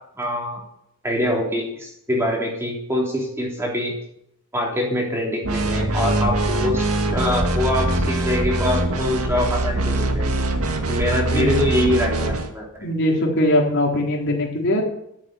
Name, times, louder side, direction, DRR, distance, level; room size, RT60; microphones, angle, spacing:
voice 1, 0.2-0.6 1.0-3.9 4.5-10.3 10.9-12.9, left 1 dB, 10° right, -2 dB, 3.5 m, -24 dB
sound 1, 5.4-12.5, right 1 dB, 80° right, 1.9 m, -23 dB
voice 2, 12.8-14.8, left 1 dB, 55° left, -1 dB, 3.8 m, -21 dB
13.5 x 8.3 x 8.9 m, 0.78 s
head